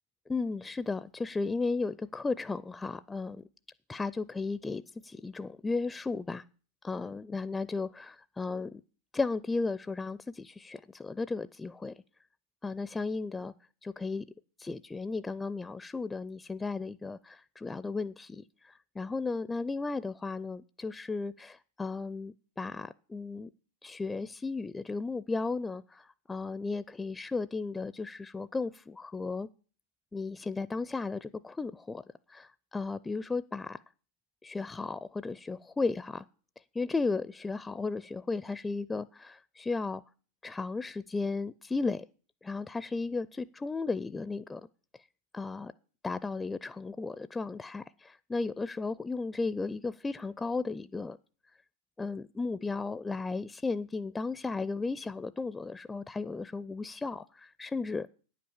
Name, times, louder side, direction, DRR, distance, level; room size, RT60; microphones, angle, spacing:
voice 1, 0.3-3.4 3.9-6.4 6.8-8.8 9.1-11.9 12.6-13.5 13.8-14.2 14.6-23.5 23.8-29.5 30.1-32.0 32.3-33.8 34.4-36.2 36.7-40.0 40.4-42.1 42.4-44.6 45.3-45.7 46.0-51.2 52.0-58.1, left 3 dB, 15° left, 0.4 m, -35 dB
9.5 x 8.6 x 7.1 m
hypercardioid pair, 100°, 0 cm